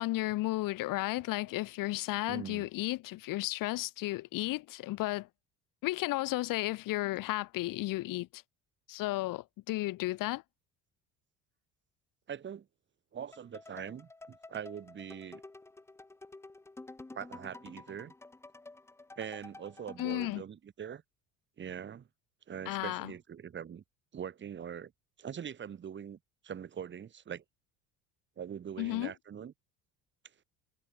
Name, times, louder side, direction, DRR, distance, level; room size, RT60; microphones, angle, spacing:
voice 1, 0.0-5.3 5.8-8.4 8.9-10.4 20.0-20.4 22.7-23.1 28.8-29.1, left 18 dB, 50° left, 0.7 m, -33 dB
voice 2, 2.3-2.7 12.3-12.7 13.1-15.4 17.1-18.1 19.2-21.0 21.6-22.1 22.5-23.8 24.1-24.9 25.2-26.2 26.4-27.4 28.4-29.5, right 8 dB, 25° right, 0.9 m, -42 dB
sound 1, 13.3-20.4, left 2 dB, 5° left, 0.5 m, -50 dB
hypercardioid pair, 65°, 43 cm